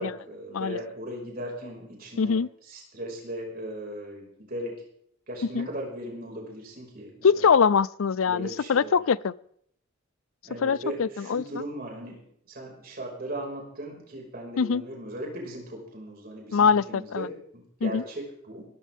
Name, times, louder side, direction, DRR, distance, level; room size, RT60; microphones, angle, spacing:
voice 1, 0.0-4.8 5.3-7.6 8.3-9.0 10.4-18.7, right 1 dB, 50° right, -1 dB, 5.5 m, -38 dB
voice 2, 2.2-2.5 5.5-5.7 7.2-9.3 10.6-11.4 14.6-14.8 16.5-17.3 17.8-18.0, left 6 dB, 85° left, 20 dB, 0.5 m, -23 dB
21.5 x 14.0 x 3.6 m, 0.68 s
head